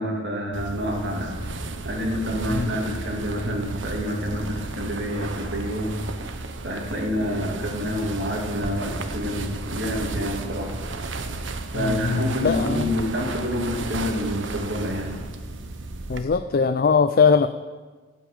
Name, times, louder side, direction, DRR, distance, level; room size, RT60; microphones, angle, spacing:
voice 1, 0.0-1.4 1.8-6.0 6.6-10.8 11.7-15.2, equal, 70° right, 0 dB, 2.6 m, -28 dB
sound 1, 0.5-16.2, right 3 dB, 85° right, 1.0 m, -33 dB
voice 2, 11.7-12.9 16.1-17.5, left 5 dB, 50° left, 10 dB, 0.4 m, -21 dB
14.0 x 5.8 x 8.8 m, 1.4 s
head